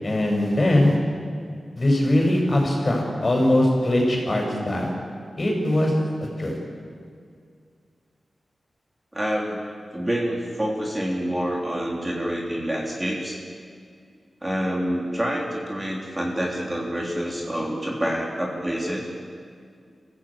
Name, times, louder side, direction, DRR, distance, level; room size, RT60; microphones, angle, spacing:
voice 1, 0.0-1.0 1.8-4.9 5.4-5.9 6.4-6.6, left 1 dB, 35° left, 0 dB, 6.2 m, -21 dB
voice 2, 9.1-13.4 14.4-19.0, equal, 20° right, -2 dB, 3.2 m, -27 dB
26.0 x 15.5 x 8.7 m, 2.2 s
wide cardioid pair, 105°, 0 cm